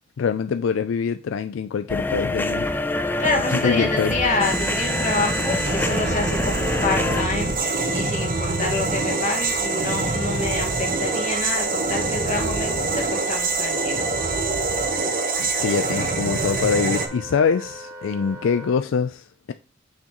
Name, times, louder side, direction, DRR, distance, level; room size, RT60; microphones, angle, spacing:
voice 1, 0.2-2.7 3.5-4.1 15.4-19.5, left 6 dB, 75° left, 0.4 m, -24 dB
sound 1, 1.9-7.2, left 2 dB, 10° left, 0.4 m, -26 dB
voice 2, 3.2-14.2, left 3 dB, 40° left, 1.8 m, -27 dB
sound 2, 4.4-17.1, right 3 dB, 45° right, 1.0 m, -25 dB
Wind instrument woodwind instrument, 5.4-18.8, left 1 dB, 20° right, 1.3 m, -38 dB
6.5 x 5.8 x 3.0 m
head